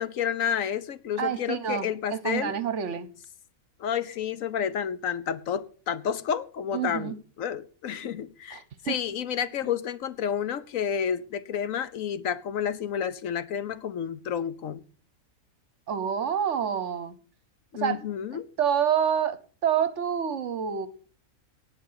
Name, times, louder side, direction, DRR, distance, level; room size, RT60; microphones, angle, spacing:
voice 1, 0.0-2.5 3.8-14.8 17.7-18.5, left 8 dB, 70° left, 1.1 m, -30 dB
voice 2, 1.2-3.1 6.7-7.1 8.5-8.9 15.9-17.2 17.8-18.0 18.6-20.9, right 8 dB, 60° right, 1.1 m, -27 dB
18.0 x 6.1 x 5.6 m
omnidirectional pair, 1.5 m